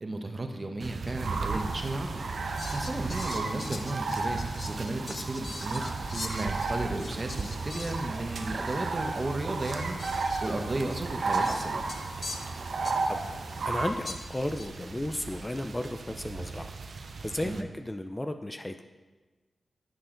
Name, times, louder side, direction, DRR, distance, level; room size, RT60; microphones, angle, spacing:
voice 1, 0.0-4.4 4.7-11.8 17.4-17.6, right 2 dB, 35° right, 5 dB, 1.1 m, -34 dB
sound 1, 0.8-17.6, right 4 dB, 65° right, 0.6 m, -40 dB
sound 2, 1.2-13.9, right 3 dB, 85° right, 1.0 m, -34 dB
Fowl, 2.6-8.4 8.6-8.8 9.4-13.3 14.0-14.7, left 3 dB, 50° left, 0.9 m, -43 dB
voice 2, 13.6-16.7 17.2-18.8, left 1 dB, 15° left, 7 dB, 0.5 m, -34 dB
10.5 x 7.9 x 3.9 m, 1.3 s
cardioid pair, 75°, 0 cm